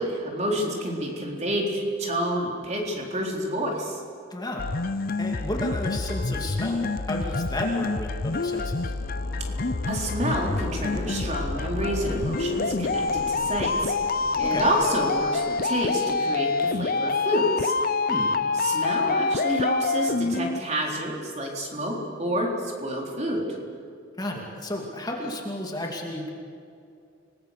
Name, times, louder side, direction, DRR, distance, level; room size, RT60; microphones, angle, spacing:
voice 1, 0.0-4.0 9.9-13.9 14.4-17.7 18.5-23.4, equal, 35° right, -1 dB, 4.1 m, -28 dB
voice 2, 4.3-4.7 5.2-8.9 14.4-14.7 18.1-18.3 24.2-26.3, left 1 dB, 20° left, 0 dB, 2.6 m, -32 dB
sound 1, 4.6-20.6, left 3 dB, 45° left, 0.6 m, -27 dB
sound 2, 7.4-16.1, left 1 dB, 90° left, 3.8 m, -40 dB
29.5 x 20.0 x 6.8 m, 2.5 s
head